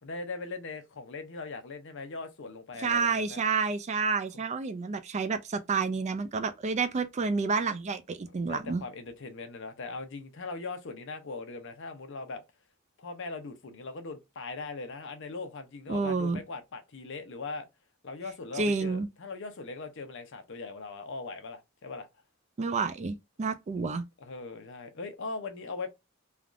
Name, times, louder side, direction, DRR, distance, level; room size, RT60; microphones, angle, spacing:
voice 1, 0.0-3.4 8.4-12.4 13.0-17.7 18.0-22.1 23.7-23.9 24.2-25.9, left 3 dB, 60° left, 0.7 m, -40 dB
voice 2, 2.8-8.8 15.9-16.4 18.6-19.1 22.6-24.0, right 4 dB, 30° right, 0.3 m, -29 dB
3.3 x 2.3 x 2.5 m
head